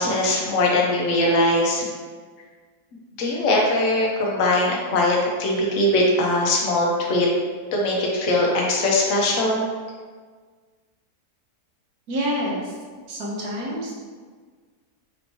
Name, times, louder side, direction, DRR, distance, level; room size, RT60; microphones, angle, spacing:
voice 1, 0.0-1.8 3.2-7.3 7.7-9.7, left 1 dB, 60° left, -2 dB, 1.0 m, -21 dB
voice 2, 12.1-12.7 13.1-13.9, equal, 70° right, -3 dB, 1.3 m, -27 dB
4.4 x 2.8 x 2.8 m, 1.5 s
omnidirectional pair, 1.7 m